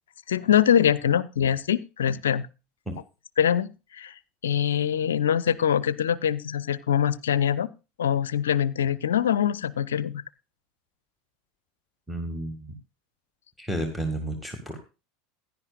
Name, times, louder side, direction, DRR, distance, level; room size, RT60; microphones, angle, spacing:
voice 1, 0.3-2.5 3.4-4.1 4.4-7.7 8.0-10.2, left 9 dB, 70° left, 19 dB, 0.5 m, -23 dB
voice 2, 12.1-12.7 13.6-14.8, right 1 dB, 5° right, 5 dB, 1.8 m, -31 dB
16.5 x 10.5 x 2.4 m, 0.29 s
figure-of-eight pair, 75°, 0 cm